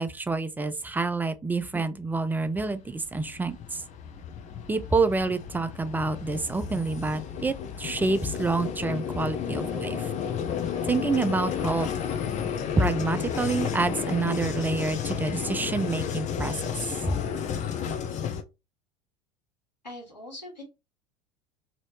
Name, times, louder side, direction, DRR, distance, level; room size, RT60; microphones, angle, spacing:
voice 1, 0.0-3.8 4.7-10.1 10.9-11.9 12.8-16.6 17.1-17.2, right 3 dB, 10° right, 0.3 m, -27 dB
Vehicle, 2.8-18.4, left 8 dB, 35° left, 0.6 m, -32 dB
voice 2, 19.8-20.6, left 1 dB, 90° left, 1.7 m, -41 dB
3.0 x 2.8 x 2.9 m
figure-of-eight pair, 75°, 21 cm